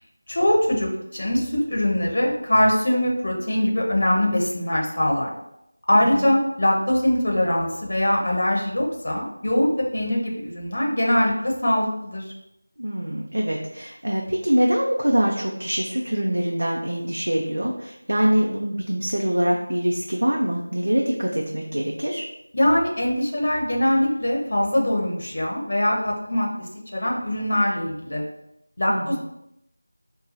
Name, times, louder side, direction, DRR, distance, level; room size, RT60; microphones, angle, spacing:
voice 1, 0.3-5.3 5.9-12.2 22.5-28.2 28.8-29.2, left 1 dB, 50° left, -2 dB, 0.8 m, -22 dB
voice 2, 5.9-6.3 12.8-22.2 28.9-29.2, equal, 80° right, 0 dB, 0.5 m, -24 dB
4.4 x 2.3 x 2.6 m, 0.81 s
figure-of-eight pair, 175°, 0 cm